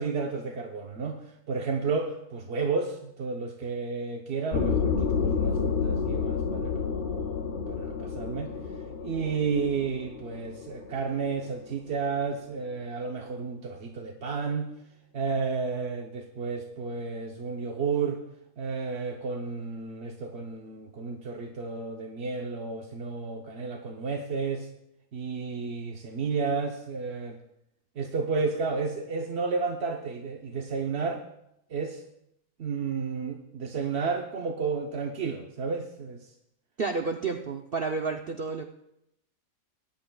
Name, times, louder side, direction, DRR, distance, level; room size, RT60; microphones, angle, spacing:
voice 1, 0.0-8.5 9.0-14.7 15.1-18.2 18.6-24.7 25.1-27.4 28.0-31.2 31.7-32.0 32.6-36.3, right 4 dB, 50° right, 2 dB, 0.8 m, -32 dB
sound 1, 4.5-11.9, left 5 dB, 75° left, 0.4 m, -30 dB
voice 2, 36.8-38.6, right 4 dB, 80° right, 3 dB, 0.5 m, -30 dB
20.0 x 10.5 x 2.3 m, 0.80 s
omnidirectional pair, 1.9 m